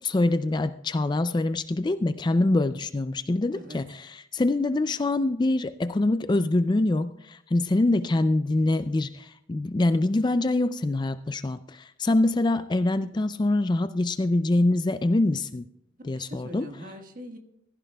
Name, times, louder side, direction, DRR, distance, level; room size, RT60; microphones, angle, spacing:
voice 1, 0.0-15.6 16.1-16.7, left 2 dB, 20° left, 12 dB, 0.3 m, -24 dB
voice 2, 3.5-3.8 16.1-17.4, equal, 40° right, 4 dB, 1.5 m, -43 dB
15.5 x 15.0 x 2.3 m, 0.77 s
head